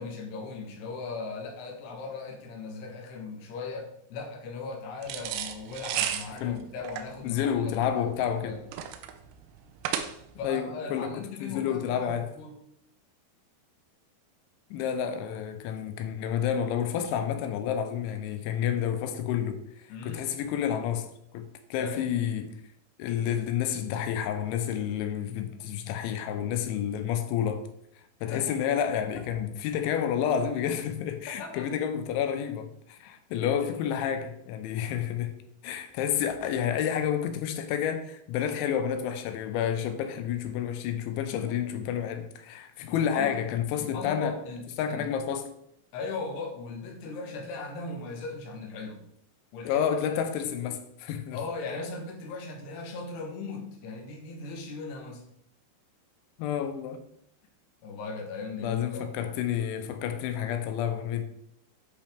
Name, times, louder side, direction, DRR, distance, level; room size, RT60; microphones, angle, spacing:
voice 1, 0.0-8.6 10.4-12.6 19.9-20.3 21.8-22.1 28.2-28.8 29.1-29.3 31.4-31.7 33.4-33.9 41.3-41.6 42.8-43.4 43.8-45.1 45.9-49.0 49.5-49.8 50.1-50.7 51.3-55.2 57.8-59.3, left 4 dB, 70° left, 2.9 m, -38 dB
sound 1, 5.0-10.5, right 9 dB, 85° right, 3.2 m, -34 dB
voice 2, 7.2-8.6 10.4-12.3 14.7-19.6 20.0-21.1 21.3-22.5 23.0-27.6 28.2-35.3 35.6-44.4 44.8-45.5 49.7-51.4 56.4-57.0 58.6-61.2, left 9 dB, 85° left, 3.0 m, -30 dB
10.5 x 5.2 x 3.5 m
omnidirectional pair, 5.4 m